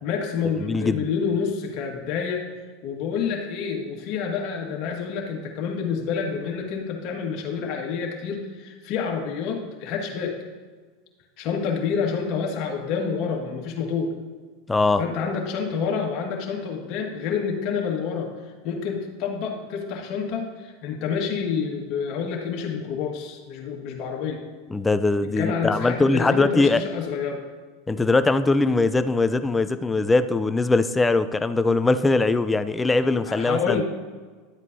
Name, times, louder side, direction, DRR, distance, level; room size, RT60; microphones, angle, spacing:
voice 1, 0.0-2.4 2.8-10.3 11.4-14.1 15.0-18.3 18.6-24.4 25.2-27.4 33.3-33.8, left 6 dB, 55° left, 1 dB, 1.7 m, -28 dB
voice 2, 0.6-1.1 14.7-15.0 24.7-26.8 27.9-33.8, left 3 dB, 15° left, 11 dB, 0.4 m, -21 dB
11.5 x 8.1 x 2.7 m, 1.5 s
hypercardioid pair, 95°, 0 cm